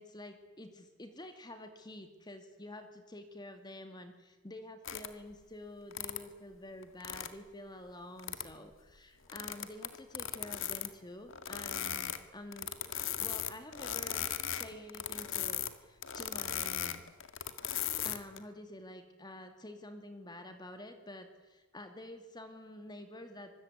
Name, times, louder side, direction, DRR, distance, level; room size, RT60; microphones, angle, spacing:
voice 1, 0.0-12.7 13.0-17.0 17.7-23.5, left 1 dB, 20° left, 7 dB, 2.3 m, -49 dB
sound 1, 4.8-5.1 5.9-6.2 6.8-7.3 8.2-8.5 9.3-10.9 11.3-12.2 12.5-15.7 16.0-18.4, left 10 dB, 70° left, 2.0 m, -37 dB
25.5 x 21.5 x 9.8 m, 1.1 s
head